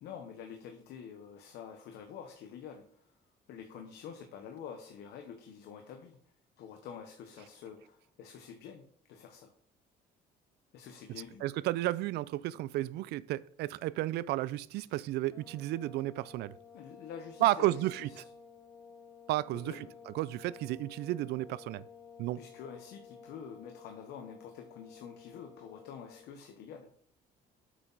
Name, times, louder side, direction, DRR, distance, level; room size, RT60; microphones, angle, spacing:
voice 1, 0.0-3.0 3.5-6.2 6.6-9.5 10.7-11.5 16.7-18.3 19.5-20.0 22.4-26.9, left 7 dB, 80° left, 1.0 m, -47 dB
voice 2, 11.4-16.5 17.4-18.1 19.3-19.8 20.1-21.9 22.2-22.4, right 16 dB, 75° right, 0.4 m, -32 dB
sound 1, 15.3-26.4, left 6 dB, 15° left, 0.9 m, -54 dB
7.8 x 5.9 x 4.0 m
cardioid pair, 110°, 17 cm